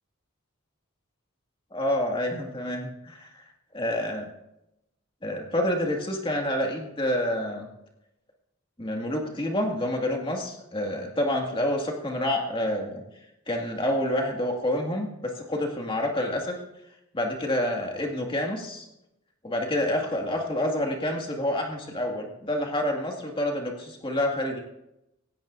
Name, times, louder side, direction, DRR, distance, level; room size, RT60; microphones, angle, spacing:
voice 1, 1.7-3.3 3.7-4.3 5.2-7.7 8.8-13.0 13.5-16.6 17.1-18.8 19.4-24.6, left 1 dB, 25° left, 1 dB, 2.1 m, -28 dB
17.0 x 16.5 x 2.7 m, 0.86 s
head